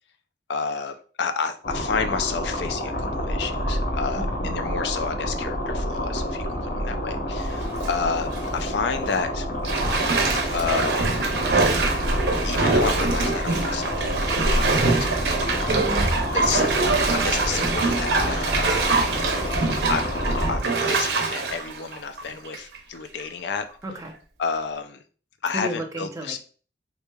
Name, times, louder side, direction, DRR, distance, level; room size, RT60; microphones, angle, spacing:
voice 1, 0.5-9.5 10.5-11.1 12.4-15.4 16.3-18.9 19.9-20.6 20.9-23.7 24.4-25.0 25.4-26.4, left 5 dB, 75° left, 9 dB, 0.4 m, -30 dB
sound 1, 1.6-20.6, equal, 55° left, 0.8 m, -28 dB
voice 2, 4.2-4.6 15.7-16.1 23.8-24.1 25.5-26.4, right 1 dB, 20° right, 2 dB, 0.6 m, -33 dB
Bathtub (filling or washing), 7.5-7.9 8.3-8.5 9.6-22.8 23.2-23.3, right 3 dB, 70° right, 0.6 m, -24 dB
3.6 x 3.2 x 2.2 m, 0.40 s
head